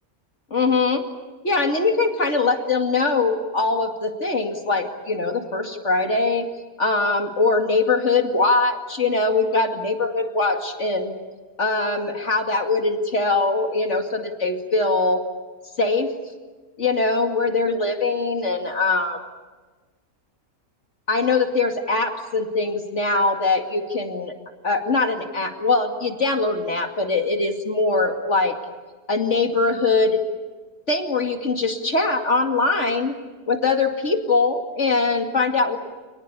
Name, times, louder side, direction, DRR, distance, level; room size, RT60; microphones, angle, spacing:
voice 1, 0.5-1.0 1.4-6.5 6.8-11.1 11.6-15.2 15.8-16.1 16.8-19.2 21.1-24.3 24.6-28.6 29.1-30.2 30.9-33.2 33.5-35.8, left 3 dB, 50° left, 4 dB, 2.6 m, -22 dB
29.0 x 20.0 x 8.5 m, 1.3 s
omnidirectional pair, 1.6 m